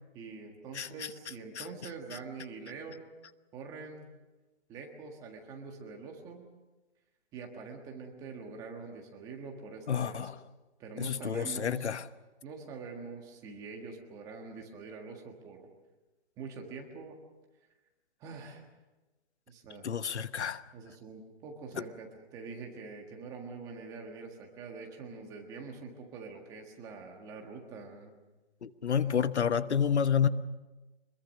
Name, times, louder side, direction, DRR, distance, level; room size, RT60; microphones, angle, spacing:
voice 1, 0.1-3.0 3.5-4.1 4.7-6.4 7.3-10.3 10.8-12.0 12.4-15.7 16.4-17.2 18.2-18.7 19.5-19.9 20.7-28.1 29.0-29.2, right 4 dB, 10° right, 2 dB, 1.6 m, -45 dB
voice 2, 9.9-10.4 11.0-12.0 19.8-20.6 21.7-21.8 28.6-30.3, left 7 dB, 80° left, 13 dB, 1.2 m, -29 dB
25.5 x 21.5 x 6.5 m, 1.2 s
hypercardioid pair, 170°, 33 cm